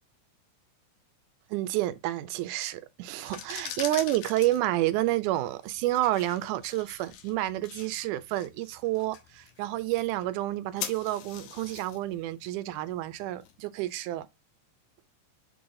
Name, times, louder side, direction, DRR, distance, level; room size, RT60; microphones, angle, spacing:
voice 1, 1.5-14.3, right 15 dB, 85° right, 2.1 m, -29 dB
sound 1, 3.1-13.9, left 9 dB, 85° left, 2.3 m, -44 dB
6.6 x 4.0 x 3.7 m
omnidirectional pair, 3.5 m